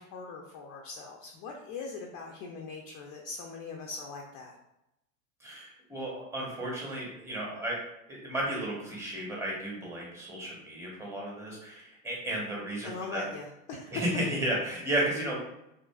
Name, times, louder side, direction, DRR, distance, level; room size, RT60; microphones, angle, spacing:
voice 1, 0.0-4.6 12.8-13.9, left 4 dB, 45° left, 0 dB, 0.5 m, -41 dB
voice 2, 5.4-7.8 8.1-13.2 13.9-15.4, right 1 dB, 5° right, -3 dB, 0.8 m, -33 dB
2.5 x 2.5 x 2.3 m, 0.84 s
hypercardioid pair, 105°, 42 cm